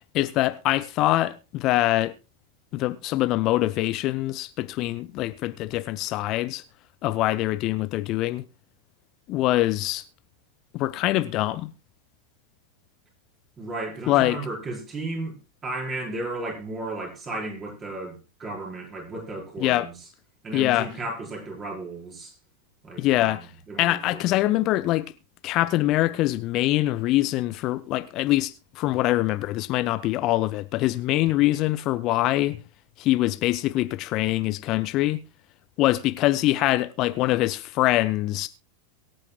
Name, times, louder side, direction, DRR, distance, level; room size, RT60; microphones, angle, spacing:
voice 1, 0.1-2.1 2.7-6.6 7.0-8.4 9.3-10.0 10.7-11.7 14.1-14.4 19.6-19.9 20.5-20.9 23.0-23.5 23.8-25.1 25.4-32.6 33.0-35.2 35.8-38.5, left 16 dB, 40° left, 0.6 m, -24 dB
voice 2, 13.6-15.4 15.6-20.0 20.4-22.3 22.8-23.4 23.7-24.3, right 2 dB, 25° right, 4.9 m, -34 dB
23.0 x 9.1 x 2.3 m
figure-of-eight pair, 90°, 0 cm